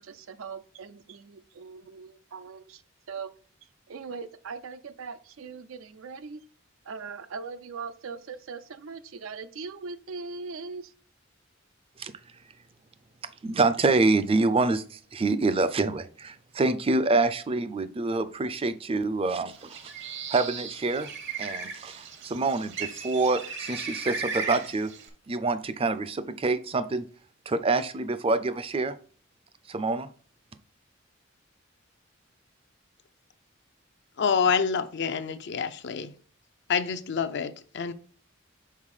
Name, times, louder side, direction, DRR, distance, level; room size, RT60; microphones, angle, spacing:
voice 1, 0.0-2.8 3.1-3.3 3.9-6.4 6.8-10.9, right 5 dB, 85° right, 0.5 m, -40 dB
voice 2, 13.4-19.8 20.3-21.1 21.4-24.9 25.3-27.1 27.5-28.9 29.7-30.1, right 3 dB, 30° right, 0.5 m, -26 dB
Bird, 19.6-25.1, right 5 dB, 60° right, 1.0 m, -36 dB
voice 3, 34.2-36.1 36.7-37.9, left 6 dB, 60° left, 0.5 m, -27 dB
5.6 x 4.2 x 4.8 m
head